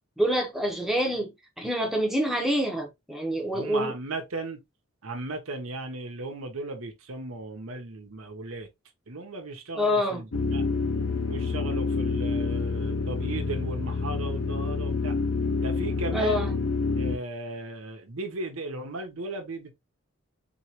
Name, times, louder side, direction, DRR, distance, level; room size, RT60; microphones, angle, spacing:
voice 1, 0.2-3.9 9.7-10.2 16.1-16.6, equal, ahead, 1.0 m, -27 dB
voice 2, 3.5-4.6 5.0-8.7 9.1-10.6 11.3-15.2 15.6-16.5 17.0-19.7, right 2 dB, 80° right, 1.0 m, -36 dB
sound 1, 10.3-17.2, left 4 dB, 75° left, 0.7 m, -28 dB
4.3 x 3.1 x 2.9 m
head